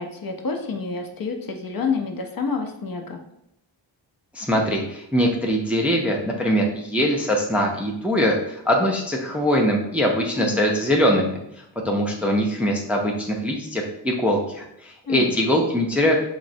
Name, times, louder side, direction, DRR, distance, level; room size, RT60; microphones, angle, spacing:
voice 1, 0.0-3.2 10.3-10.6 15.1-15.4, left 5 dB, 50° left, 3 dB, 0.5 m, -28 dB
voice 2, 4.3-11.4 11.8-16.2, equal, 5° right, 0 dB, 0.4 m, -22 dB
3.7 x 2.1 x 2.6 m, 0.78 s
cardioid pair, 60°, 47 cm